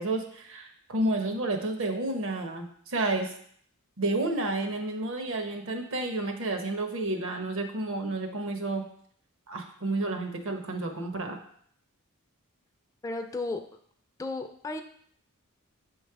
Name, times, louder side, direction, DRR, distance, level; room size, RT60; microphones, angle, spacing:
voice 1, 0.0-3.3 4.0-8.8 9.5-11.4, right 2 dB, 65° right, 5 dB, 0.8 m, -30 dB
voice 2, 13.0-13.6 14.2-14.8, left 2 dB, 15° left, 5 dB, 0.3 m, -33 dB
6.5 x 3.1 x 4.6 m, 0.63 s
head